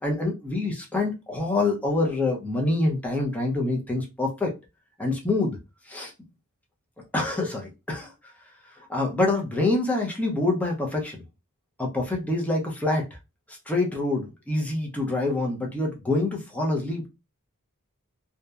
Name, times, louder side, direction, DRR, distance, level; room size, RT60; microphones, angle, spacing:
voice 1, 0.0-4.5 5.0-5.6 5.9-6.1 7.1-8.1 8.8-11.2 11.8-13.1 13.5-17.1, left 2 dB, 5° left, 0.5 m, -26 dB
2.7 x 2.1 x 2.3 m
head